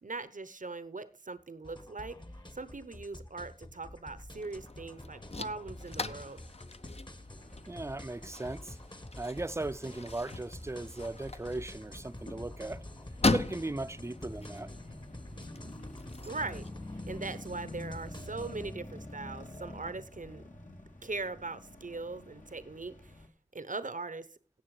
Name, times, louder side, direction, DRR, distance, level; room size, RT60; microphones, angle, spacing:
voice 1, 0.0-2.2 2.5-6.4 16.3-16.6 17.1-20.4 21.0-23.2 23.5-24.3, right 3 dB, 80° right, 0.9 m, -40 dB
sound 1, 1.6-18.7, left 1 dB, 35° left, 1.3 m, -49 dB
sound 2, 4.4-16.7, left 3 dB, 50° left, 0.8 m, -39 dB
sound 3, 7.3-23.3, left 1 dB, 75° left, 2.3 m, -48 dB
voice 2, 7.7-8.8 9.2-12.8 13.2-14.7, right 2 dB, 20° right, 0.5 m, -37 dB
17.0 x 6.8 x 4.9 m
wide cardioid pair, 40°, 13 cm